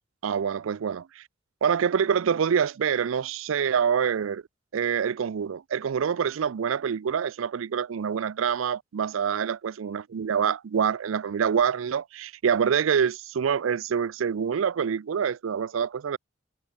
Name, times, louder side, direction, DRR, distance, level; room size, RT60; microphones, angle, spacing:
voice 1, 0.2-1.2 1.6-4.4 4.7-16.2, right 7 dB, 90° right, 0.4 m, -26 dB
head